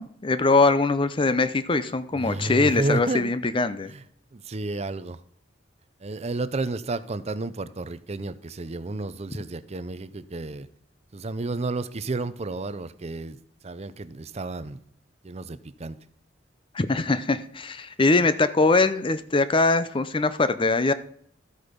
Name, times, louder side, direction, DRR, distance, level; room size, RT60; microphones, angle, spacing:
voice 1, 0.0-3.9 16.7-20.9, left 3 dB, 30° left, 13 dB, 0.6 m, -22 dB
voice 2, 2.1-3.3 3.9-4.0 4.3-5.2 6.0-10.7 11.1-13.4 13.6-14.8 15.2-16.0, right 2 dB, 35° right, 14 dB, 0.6 m, -31 dB
13.5 x 8.2 x 5.2 m, 0.65 s
head